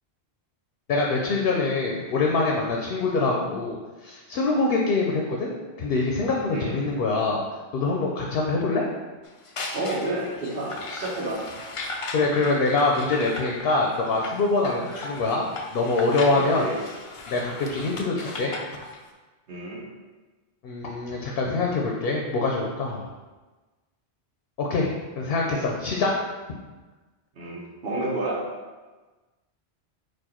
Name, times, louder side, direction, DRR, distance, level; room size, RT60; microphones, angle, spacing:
voice 1, 0.9-5.5 5.8-7.4 7.7-8.9 12.1-15.4 15.7-16.7 17.3-18.5 20.6-23.1 24.6-26.1, left 3 dB, 65° left, -1 dB, 0.8 m, -24 dB
sound 1, 9.2-19.0, left 3 dB, 50° left, 0.4 m, -37 dB
voice 2, 9.7-11.4 16.3-16.8 19.5-19.8 27.4-28.4, right 2 dB, 60° right, -5 dB, 1.3 m, -30 dB
4.5 x 2.5 x 4.3 m, 1.3 s
omnidirectional pair, 1.1 m